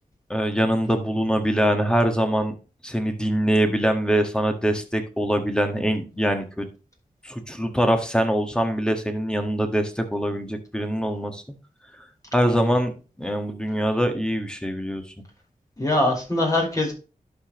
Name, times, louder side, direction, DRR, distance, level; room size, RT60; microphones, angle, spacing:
voice 1, 0.3-2.5 2.8-6.7 7.2-11.4 12.3-12.9 13.2-15.0, equal, 5° left, 6 dB, 1.6 m, -23 dB
voice 2, 15.8-16.9, left 1 dB, 25° left, -1 dB, 4.7 m, -23 dB
11.5 x 5.2 x 3.0 m, 0.33 s
cardioid pair, 50°, 15 cm